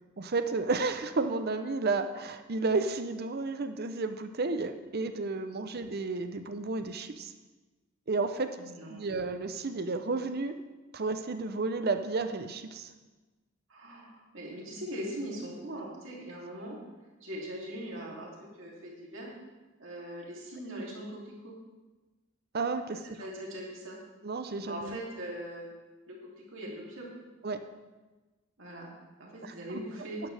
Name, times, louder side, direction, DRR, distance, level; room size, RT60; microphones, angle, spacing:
voice 1, 0.2-7.3 8.1-8.5 8.9-10.6 10.9-12.9 22.5-23.0 24.2-25.0 27.4-27.6 29.4-29.6, right 3 dB, 50° right, 9 dB, 0.6 m, -32 dB
voice 2, 8.6-9.1 13.7-16.8 17.2-18.3 18.5-19.3 19.8-21.6 23.0-24.0 24.6-25.7 26.1-27.1 28.6-28.9 29.3-30.2, right 1 dB, 65° right, -3 dB, 2.9 m, -41 dB
12.5 x 10.0 x 3.4 m, 1.2 s
head